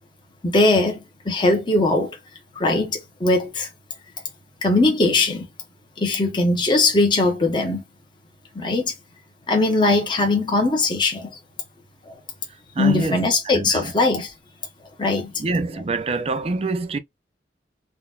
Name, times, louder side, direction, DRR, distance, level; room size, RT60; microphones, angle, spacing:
voice 1, 0.4-2.1 2.6-3.7 4.6-5.5 6.0-7.8 8.5-8.9 9.5-11.3 12.1-12.2 12.8-14.3 15.0-15.3, left 2 dB, 25° left, 0.8 m, -20 dB
voice 2, 12.7-13.3 13.5-13.9 15.1-17.0, right 3 dB, 35° right, 0.4 m, -26 dB
3.9 x 2.1 x 2.3 m
head